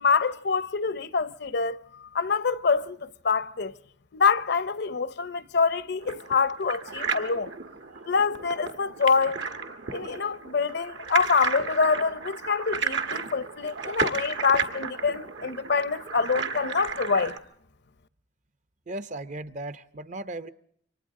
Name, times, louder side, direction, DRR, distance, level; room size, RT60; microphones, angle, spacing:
voice 1, 0.0-1.8 2.1-3.7 4.1-7.5 8.1-9.4 9.9-17.4, left 5 dB, 65° left, 0.8 m, -25 dB
sound 1, 6.0-17.4, right 5 dB, 75° right, 1.7 m, -33 dB
voice 2, 18.9-20.5, right 1 dB, 40° right, 0.8 m, -36 dB
28.5 x 24.5 x 3.7 m
head